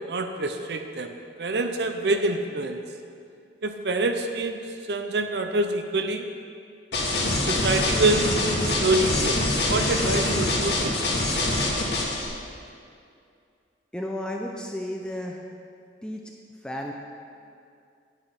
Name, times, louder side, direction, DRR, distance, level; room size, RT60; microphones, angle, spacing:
voice 1, 0.1-2.9 3.6-4.6 4.9-6.2 7.5-8.3 8.6-11.0, right 2 dB, 70° right, 6 dB, 0.7 m, -26 dB
sound 1, 6.9-12.2, left 2 dB, 75° left, 2.1 m, -24 dB
voice 2, 13.9-15.4 16.0-16.3 16.6-16.9, left 1 dB, 5° left, 0 dB, 0.5 m, -33 dB
9.8 x 8.3 x 5.8 m, 2.4 s
head